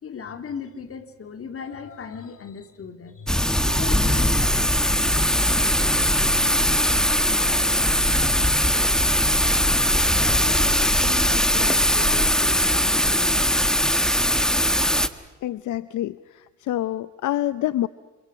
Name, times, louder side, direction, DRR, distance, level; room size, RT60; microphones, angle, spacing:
voice 1, 0.0-9.4 10.2-13.6, left 6 dB, 50° left, 7 dB, 3.0 m, -38 dB
Thunder / Rain, 3.3-15.1, equal, ahead, 1.5 m, -20 dB
voice 2, 15.4-17.9, left 13 dB, 75° left, 15 dB, 0.7 m, -27 dB
29.0 x 27.0 x 6.3 m, 1.3 s
cardioid pair, 90°, 30 cm